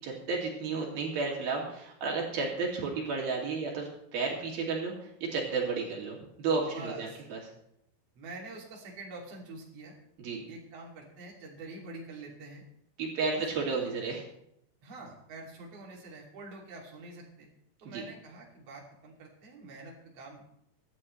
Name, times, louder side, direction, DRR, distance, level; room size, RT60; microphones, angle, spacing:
voice 1, 0.0-7.4 10.2-10.4 13.0-14.2 17.9-18.1, right 4 dB, 70° right, -2 dB, 4.4 m, -32 dB
voice 2, 6.7-7.2 8.2-10.0 10.5-12.6 13.3-13.4 14.8-17.5 17.8-20.4, right 2 dB, 40° right, -3 dB, 3.6 m, -46 dB
24.5 x 10.5 x 3.2 m, 0.76 s
omnidirectional pair, 4.6 m